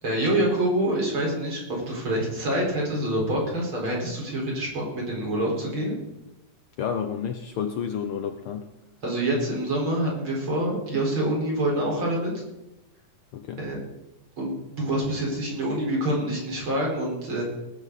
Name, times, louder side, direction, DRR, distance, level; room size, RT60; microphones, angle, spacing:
voice 1, 0.0-6.0 9.0-12.3 13.6-13.8 14.4-17.4, right 1 dB, 40° right, -2 dB, 5.6 m, -26 dB
voice 2, 6.8-8.7 13.3-13.6, left 7 dB, 90° left, 7 dB, 1.2 m, -30 dB
19.5 x 11.5 x 4.1 m, 0.95 s
omnidirectional pair, 3.6 m